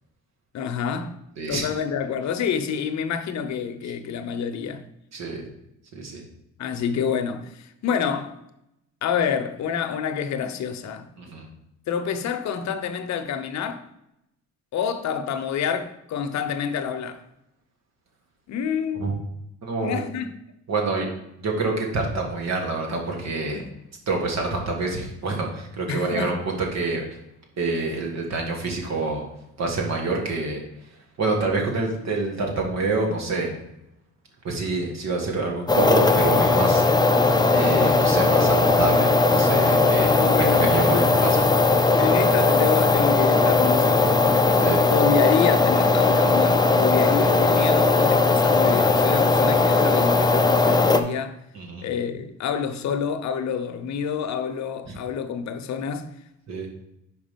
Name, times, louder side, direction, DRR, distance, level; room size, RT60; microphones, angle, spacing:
voice 1, 0.5-1.2 1.4-4.9 6.6-8.4 9.0-11.1 11.9-13.8 14.7-17.2 18.5-19.1 19.8-20.3 23.5-23.7 25.9-26.4 40.1-41.2 42.0-44.6 44.9-51.4 51.8-56.1, left 7 dB, 65° left, 0.8 m, -27 dB
voice 2, 1.4-1.7 5.1-5.4 5.9-6.2 11.2-11.5 19.0-19.1 19.6-20.0 20.7-21.0 21.4-23.6 24.1-27.0 27.6-29.2 29.6-30.6 31.2-33.5 34.4-36.8 37.5-40.1 40.5-41.4 44.6-44.8 51.5-51.9 56.5-56.7, right 3 dB, 60° right, 1.8 m, -27 dB
sound 1, 35.7-51.0, left 3 dB, 15° left, 0.5 m, -18 dB
5.2 x 4.9 x 5.1 m
cardioid pair, 90°, 30 cm